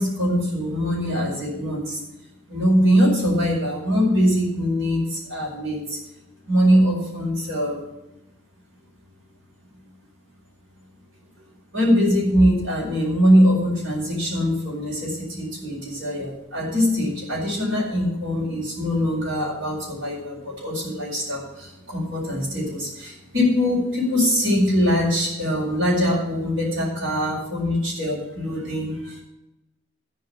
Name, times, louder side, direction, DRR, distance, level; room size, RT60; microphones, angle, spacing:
voice 1, 0.0-2.0 2.5-6.0 6.4-7.8 11.7-29.2, equal, 70° right, -7 dB, 4.9 m, -22 dB
14.0 x 5.0 x 8.8 m, 0.93 s
head